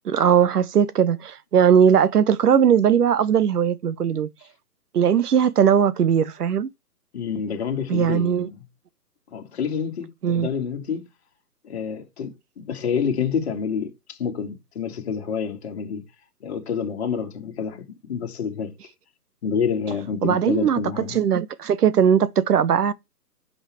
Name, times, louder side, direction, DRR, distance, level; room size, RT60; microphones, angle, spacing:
voice 1, 0.0-4.3 4.9-6.7 7.9-8.5 10.2-10.5 20.2-22.9, right 8 dB, 65° right, 0.9 m, -19 dB
voice 2, 7.1-8.6 9.3-11.0 11.6-16.0 16.4-17.8 18.1-18.7 19.4-21.2, left 6 dB, 40° left, 2.0 m, -28 dB
5.8 x 5.4 x 4.8 m
hypercardioid pair, 155°, 49 cm